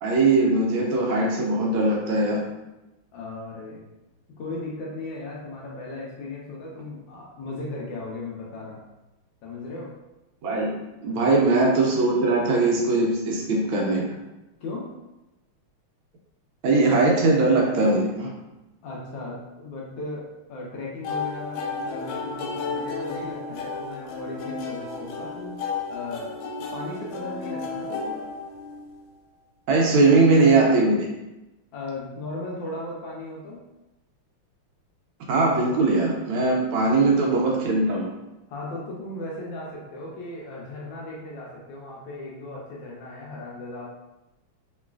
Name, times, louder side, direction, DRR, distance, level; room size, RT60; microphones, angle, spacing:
voice 1, 0.0-2.4 10.4-10.7 11.0-14.1 16.6-18.3 29.7-31.0 35.3-38.1, right 3 dB, 75° right, -1 dB, 1.3 m, -20 dB
voice 2, 3.1-3.9 4.4-8.8 9.4-9.9 11.1-11.4 14.6-14.9 18.8-25.6 25.9-26.4 26.7-28.2 31.7-33.6 36.7-36.9 38.5-43.8, left 2 dB, 75° left, -3 dB, 1.2 m, -36 dB
sound 1, 21.0-29.0, left 4 dB, 90° left, 1.5 m, -33 dB
3.1 x 3.0 x 2.3 m, 1.0 s
omnidirectional pair, 2.4 m